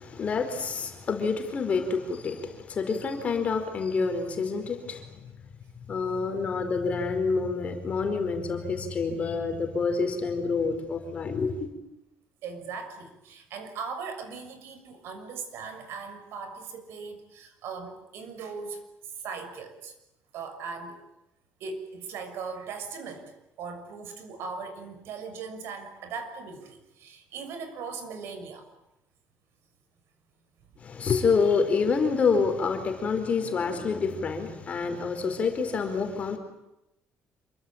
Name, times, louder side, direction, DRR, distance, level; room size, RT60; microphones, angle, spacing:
voice 1, 0.0-5.3 5.9-11.7 30.8-36.4, left 5 dB, 30° left, 4.6 m, -27 dB
voice 2, 12.4-18.8 19.2-19.9 20.3-21.0 21.6-23.3 23.6-28.7, right 5 dB, 65° right, 6.4 m, -39 dB
27.5 x 24.5 x 8.9 m
cardioid pair, 175°, 5 cm